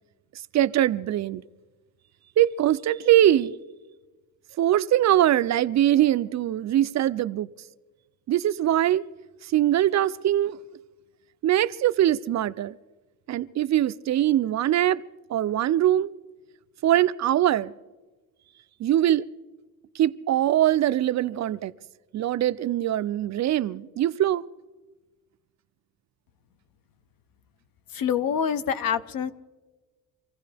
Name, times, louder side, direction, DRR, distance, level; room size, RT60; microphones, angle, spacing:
voice 1, 0.5-1.4 2.4-3.6 4.6-7.5 8.3-9.0 9.4-10.6 11.4-12.8 13.3-15.0 15.3-16.1 16.8-17.7 18.8-19.2 20.0-21.7 22.1-24.4, right 12 dB, 50° right, 0.4 m, -22 dB
voice 2, 27.9-29.3, left 8 dB, 65° left, 0.9 m, -26 dB
26.5 x 16.0 x 3.4 m
cardioid pair, 145°, 38 cm